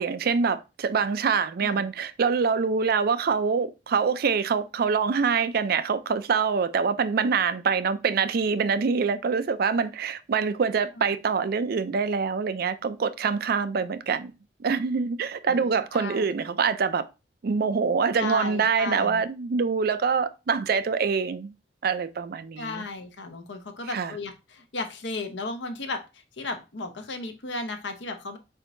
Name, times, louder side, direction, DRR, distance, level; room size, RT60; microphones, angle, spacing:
voice 1, 0.0-14.3 14.6-17.0 17.4-21.5 21.8-22.8 23.9-24.1, right 5 dB, 55° right, 0.4 m, -25 dB
voice 2, 15.4-16.2 18.2-19.2 22.6-28.4, left 3 dB, 75° left, 0.9 m, -35 dB
4.6 x 4.4 x 2.6 m
head